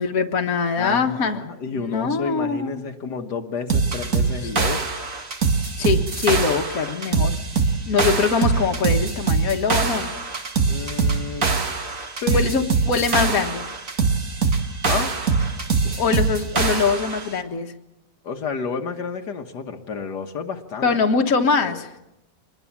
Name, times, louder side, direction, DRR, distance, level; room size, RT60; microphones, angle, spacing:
voice 1, 0.0-1.4 1.7-2.8 5.8-7.4 7.9-10.1 12.3-13.6 16.0-17.7 20.8-21.9, left 5 dB, 55° left, 4 dB, 1.8 m, -22 dB
voice 2, 0.8-4.8 10.7-11.5 12.2-12.5 14.9-15.1 18.2-21.0 21.6-21.8, left 5 dB, 70° left, 4 dB, 1.8 m, -30 dB
sound 1, 3.7-17.3, right 4 dB, 50° right, 2.4 m, -23 dB
24.5 x 21.0 x 7.3 m, 0.87 s
omnidirectional pair, 1.9 m